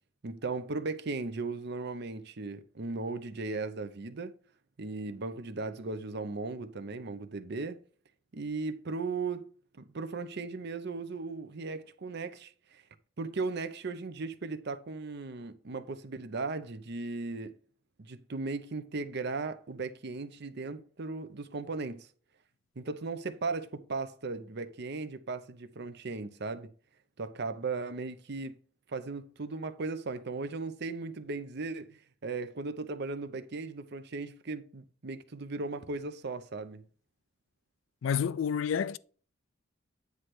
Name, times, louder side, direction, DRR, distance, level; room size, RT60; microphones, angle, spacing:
voice 1, 0.2-4.3 4.8-7.8 8.3-9.5 9.7-12.8 13.2-17.5 18.0-22.1 22.8-26.7 27.2-28.6 28.9-36.8, right 3 dB, 60° right, 0.7 m, -37 dB
voice 2, 38.0-39.0, left 7 dB, 85° left, 0.4 m, -29 dB
9.6 x 3.3 x 6.0 m
head